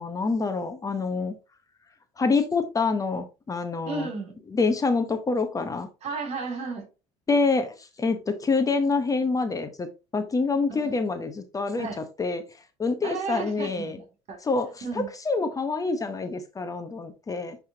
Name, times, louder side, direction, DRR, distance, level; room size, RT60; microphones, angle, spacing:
voice 1, 0.0-1.3 2.2-4.1 4.5-5.9 7.3-11.9 12.2-12.4 12.8-14.0 14.4-14.7 14.9-17.6, left 4 dB, 25° left, 0.9 m, -26 dB
voice 2, 3.8-4.4 6.0-6.9 10.7-10.9 11.8-12.1 13.0-14.4 14.8-15.1, right 4 dB, 50° right, 2.8 m, -33 dB
9.6 x 3.5 x 2.8 m
supercardioid pair, 95°, 14 cm